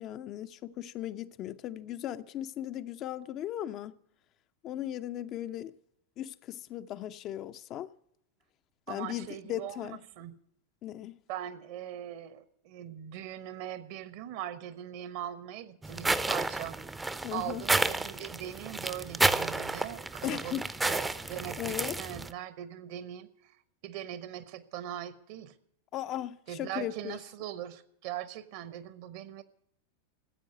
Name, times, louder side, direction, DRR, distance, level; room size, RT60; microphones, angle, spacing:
voice 1, 0.0-4.0 4.6-5.7 6.2-7.9 8.9-10.0 10.8-11.2 17.2-17.7 20.2-20.7 21.6-22.0 25.9-27.2, left 12 dB, 35° left, 0.5 m, -37 dB
voice 2, 8.9-9.8 10.2-10.4 11.3-16.8 17.3-23.3 23.8-25.5 26.5-29.4, right 11 dB, 45° right, 1.1 m, -40 dB
sound 1, 15.8-22.3, right 2 dB, 10° right, 0.7 m, -31 dB
14.5 x 8.5 x 9.3 m
figure-of-eight pair, 90°, 0 cm